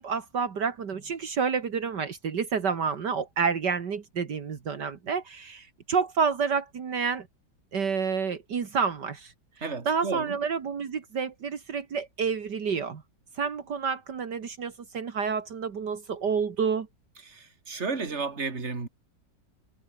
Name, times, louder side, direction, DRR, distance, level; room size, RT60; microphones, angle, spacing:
voice 1, 0.0-7.3 7.7-9.3 9.9-13.0 13.4-16.9, right 6 dB, 70° right, 2.5 m, -29 dB
voice 2, 9.6-10.4 17.2-18.9, right 4 dB, 40° right, 3.0 m, -33 dB
omnidirectional pair, 1.9 m